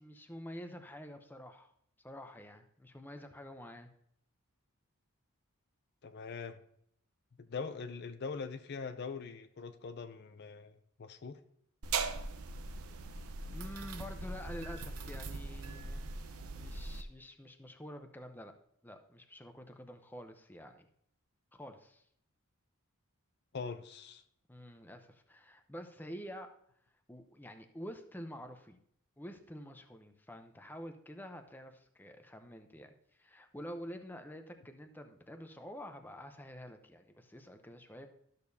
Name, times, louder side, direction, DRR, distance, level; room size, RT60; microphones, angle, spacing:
voice 1, 0.0-1.7 2.0-3.9 13.5-16.1 16.3-18.5 18.8-20.8 21.5-22.0 24.5-26.5 27.1-28.8 29.2-32.9 33.2-38.1, equal, 10° left, 5 dB, 0.6 m, -48 dB
voice 2, 6.0-6.6 7.5-10.7 11.0-11.4 23.5-24.2, left 5 dB, 50° left, 9 dB, 0.5 m, -42 dB
sound 1, 11.8-17.0, right 4 dB, 80° right, 0.7 m, -40 dB
12.5 x 6.7 x 2.7 m, 0.71 s
head